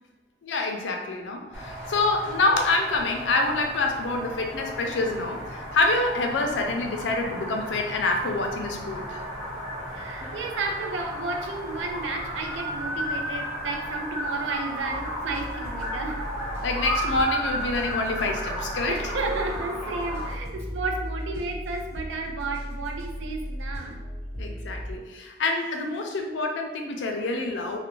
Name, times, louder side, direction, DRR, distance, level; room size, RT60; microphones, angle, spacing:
voice 1, 0.4-9.2 16.6-19.1 24.4-27.8, left 2 dB, 80° left, 3 dB, 0.4 m, -26 dB
sound 1, 1.5-20.3, equal, 15° right, 0.5 m, -34 dB
voice 2, 9.9-16.2 18.9-24.0, right 3 dB, 85° right, 2 dB, 0.4 m, -32 dB
sound 2, 14.8-24.9, equal, 55° right, 1.1 m, -36 dB
2.4 x 2.1 x 3.0 m, 1.2 s
head